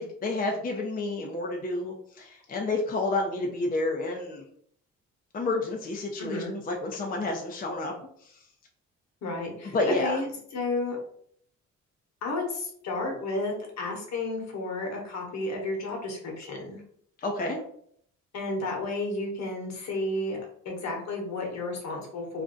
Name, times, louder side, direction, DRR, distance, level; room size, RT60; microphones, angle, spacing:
voice 1, 0.0-4.4 5.3-7.9 9.6-10.2 17.2-17.6, left 2 dB, 30° left, 1 dB, 0.5 m, -30 dB
voice 2, 6.2-6.5 9.2-9.7 10.0-10.3 10.5-11.0 12.2-16.8 18.3-20.4 20.6-22.4, left 2 dB, 65° left, 1 dB, 1.1 m, -32 dB
2.5 x 2.2 x 3.7 m, 0.65 s
cardioid pair, 90°, 30 cm